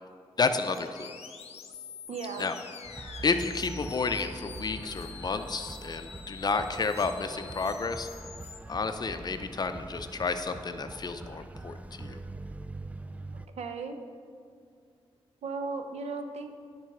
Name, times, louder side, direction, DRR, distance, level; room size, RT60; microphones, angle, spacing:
voice 1, 0.4-1.1 2.4-2.5 3.2-8.1 8.7-12.2, left 4 dB, 40° left, 8 dB, 0.5 m, -31 dB
sound 1, 0.6-8.6, left 6 dB, 85° left, 0.6 m, -47 dB
voice 2, 2.1-2.5 13.3-14.0 15.4-16.5, right 4 dB, 90° right, 7 dB, 0.6 m, -36 dB
sound 2, 2.8-13.5, right 2 dB, 15° right, 0.3 m, -43 dB
10.5 x 4.0 x 4.8 m, 2.2 s
cardioid pair, 75°, 11 cm